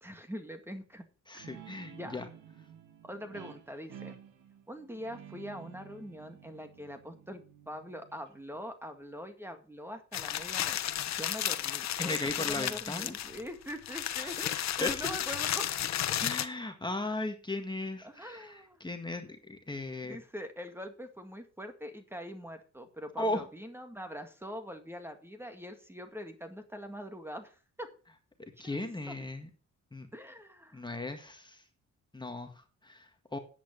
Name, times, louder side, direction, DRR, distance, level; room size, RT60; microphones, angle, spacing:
voice 1, 0.0-1.0 1.9-2.2 3.0-4.1 4.7-16.1 18.0-18.8 20.0-27.9 28.6-28.8 29.1-29.2 30.1-30.8, equal, 10° right, 7 dB, 2.0 m, -43 dB
voice 2, 1.3-2.3 12.0-13.1 14.1-14.4 14.8-15.1 16.2-20.2 23.2-23.4 28.4-29.5 29.9-30.1 30.7-31.6 32.1-33.4, left 2 dB, 15° left, 5 dB, 1.8 m, -37 dB
Guitar, 1.4-8.6, right 9 dB, 85° right, 2.3 m, -52 dB
sound 1, 10.1-16.5, left 11 dB, 65° left, 1.0 m, -33 dB
10.0 x 8.5 x 5.3 m, 0.37 s
cardioid pair, 90°, 30 cm